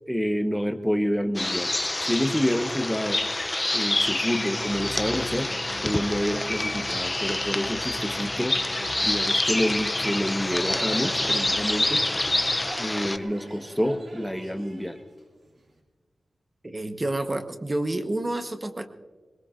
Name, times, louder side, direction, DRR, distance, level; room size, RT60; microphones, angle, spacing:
voice 1, 0.1-1.7 2.0-3.2 3.7-5.5 5.8-8.6 9.0-12.0 12.8-15.0, equal, ahead, 7 dB, 1.1 m, -28 dB
sound 1, 1.4-13.2, left 2 dB, 20° left, 0.6 m, -27 dB
sound 2, 4.6-12.9, left 2 dB, 40° left, 2.5 m, -42 dB
Crowd, 10.3-15.8, right 2 dB, 60° right, 2.9 m, -41 dB
voice 2, 16.6-18.9, right 1 dB, 25° right, 7 dB, 1.2 m, -29 dB
22.0 x 21.0 x 2.6 m, 1.4 s
wide cardioid pair, 105°, 0 cm